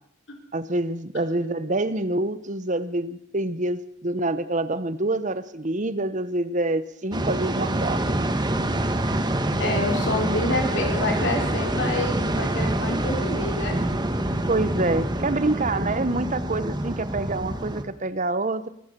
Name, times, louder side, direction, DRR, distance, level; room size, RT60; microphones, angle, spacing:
voice 1, 0.5-8.0 14.5-18.7, right 2 dB, 40° right, 14 dB, 1.0 m, -26 dB
sound 1, 7.1-17.8, right 1 dB, 25° right, 1.8 m, -26 dB
voice 2, 9.6-13.7, left 2 dB, 65° left, 2 dB, 4.5 m, -27 dB
24.5 x 16.0 x 6.9 m, 0.76 s
head